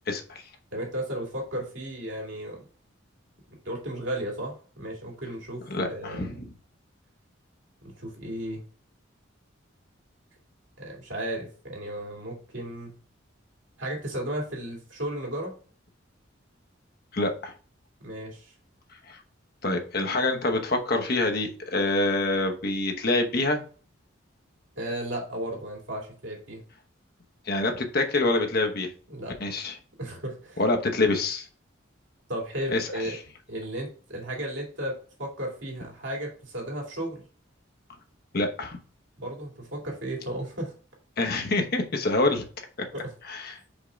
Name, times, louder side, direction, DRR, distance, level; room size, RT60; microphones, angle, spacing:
voice 1, 0.1-0.4 5.7-6.3 17.1-17.5 19.1-19.2 19.6-23.6 27.5-28.9 29.4-29.7 30.6-31.5 32.7-33.2 38.3-38.8 41.2-42.4 43.3-43.5, left 2 dB, 50° left, 4 dB, 1.0 m, -26 dB
voice 2, 0.7-2.6 3.6-6.4 7.8-8.6 10.8-12.9 13.8-15.5 18.0-18.5 24.8-26.6 29.1-29.3 30.0-30.6 32.3-33.1 33.5-34.9 35.2-37.2 39.2-40.7 42.9-43.1, right 1 dB, 70° right, -1 dB, 2.6 m, -34 dB
5.3 x 3.7 x 5.1 m, 0.40 s
head